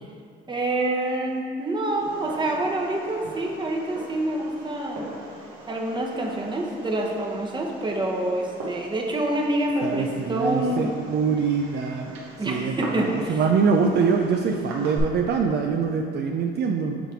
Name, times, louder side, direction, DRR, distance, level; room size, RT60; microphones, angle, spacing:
voice 1, 0.5-5.1 5.7-10.9 12.4-13.4, right 1 dB, 25° right, 0 dB, 0.9 m, -27 dB
Fireworks, 2.0-15.0, right 2 dB, 85° right, 1.2 m, -41 dB
voice 2, 9.8-12.1 12.5-17.0, right 5 dB, 60° right, 2 dB, 0.4 m, -24 dB
7.1 x 3.3 x 4.4 m, 2.2 s
cardioid pair, 90°, 20 cm